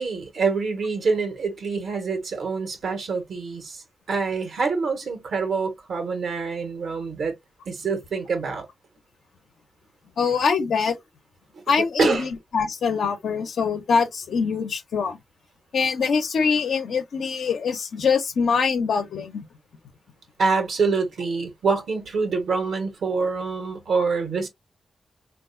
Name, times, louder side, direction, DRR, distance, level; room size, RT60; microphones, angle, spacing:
voice 1, 0.0-3.8 4.1-7.3 7.7-8.7 11.5-12.3 20.4-24.5, right 4 dB, 75° right, 1.2 m, -26 dB
voice 2, 10.2-11.0 11.7-15.2 15.7-19.4, left 5 dB, 80° left, 0.8 m, -23 dB
3.6 x 2.6 x 2.5 m
cardioid pair, 55°, 0 cm